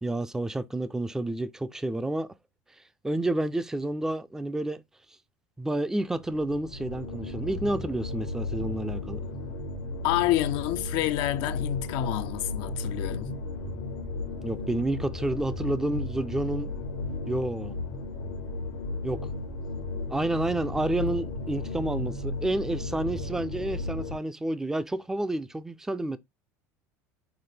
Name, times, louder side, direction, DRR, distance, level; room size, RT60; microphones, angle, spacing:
voice 1, 0.0-2.3 3.0-4.8 5.6-9.2 14.4-16.7 17.3-17.8 19.0-19.2 20.1-26.2, right 1 dB, 5° right, 0.4 m, -30 dB
sound 1, 6.1-24.2, left 2 dB, 85° left, 1.0 m, -34 dB
voice 2, 10.0-13.3, left 14 dB, 65° left, 0.4 m, -28 dB
5.8 x 2.2 x 3.2 m
supercardioid pair, 95°, 8 cm